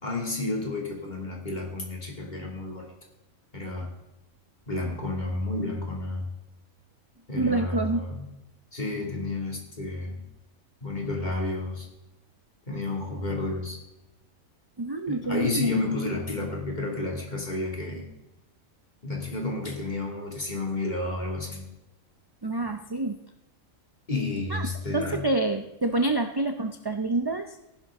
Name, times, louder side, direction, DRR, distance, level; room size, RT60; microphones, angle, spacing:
voice 1, 0.0-2.8 3.5-3.9 4.7-6.3 7.3-8.3 8.7-10.2 10.8-11.9 12.7-13.8 15.1-18.1 19.0-21.7 24.1-25.2, left 2 dB, 35° left, 0 dB, 2.7 m, -31 dB
voice 2, 7.3-8.0 14.8-15.9 22.4-23.2 24.5-24.7 24.9-27.6, right 2 dB, 35° right, 6 dB, 0.4 m, -27 dB
15.0 x 11.5 x 3.7 m, 0.96 s
omnidirectional pair, 1.4 m